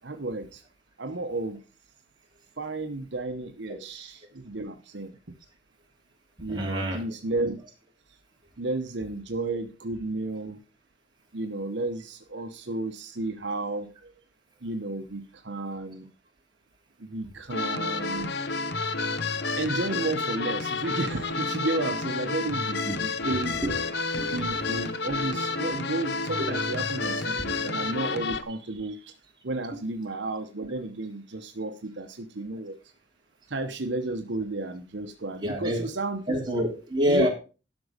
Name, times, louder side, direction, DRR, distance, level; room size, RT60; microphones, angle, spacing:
voice 1, 0.0-0.6 1.0-1.6 2.6-5.2 6.4-7.6 8.6-10.6 11.3-14.1 14.6-16.1 17.0-18.3 19.6-23.6 24.2-29.1 29.4-32.7 33.5-36.4 37.1-37.3, right 2 dB, 70° right, 6 dB, 1.0 m, -32 dB
voice 2, 6.5-7.0 22.9-23.0 23.2-23.8 24.2-24.3 26.4-26.5 35.4-35.9 36.3-37.3, equal, 25° right, -1 dB, 3.0 m, -27 dB
sound 1, 17.5-28.4, left 3 dB, 60° left, 0.9 m, -30 dB
12.0 x 6.2 x 5.0 m, 0.34 s
head